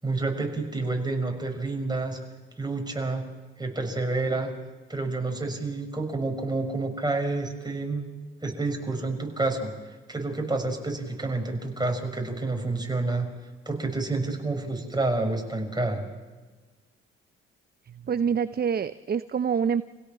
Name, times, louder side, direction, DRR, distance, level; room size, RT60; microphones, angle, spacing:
voice 1, 0.0-2.2 2.6-3.3 3.6-4.5 4.9-8.1 8.4-9.7 10.1-13.3 13.7-16.1, right 3 dB, 15° right, 3 dB, 6.1 m, -29 dB
voice 2, 17.9-19.8, right 7 dB, 35° right, 14 dB, 0.7 m, -26 dB
26.5 x 16.5 x 7.5 m, 1.3 s
hypercardioid pair, 45°, 29 cm